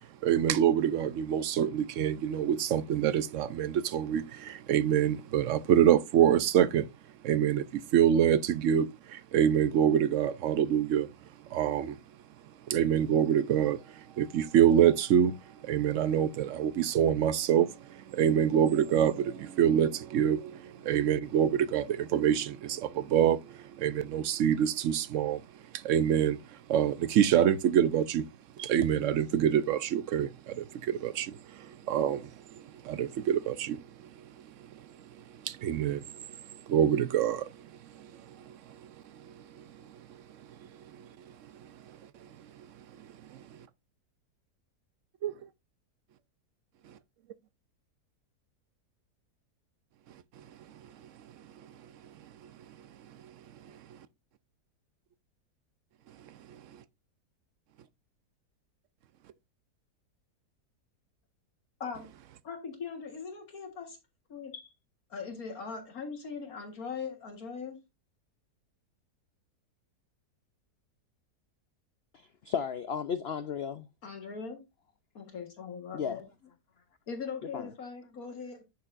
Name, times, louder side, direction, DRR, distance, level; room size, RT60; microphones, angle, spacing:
voice 1, 0.2-6.9 7.2-11.1 11.5-12.0 12.7-13.8 14.2-15.4 15.6-25.4 25.7-26.4 26.7-28.3 28.6-32.3 32.6-33.8 35.4-36.0 36.7-37.5 38.0-38.1 39.2-39.3 45.2-45.3, right 9 dB, 70° right, 0.7 m, -26 dB
voice 2, 62.4-64.0 64.3-64.7 65.1-67.8 74.0-74.6 75.2-76.2 77.1-78.6, left 5 dB, 60° left, 1.9 m, -40 dB
voice 3, 72.1-73.9 75.9-76.2 77.5-77.7, left 7 dB, 90° left, 0.5 m, -34 dB
10.5 x 6.8 x 2.5 m
omnidirectional pair, 1.7 m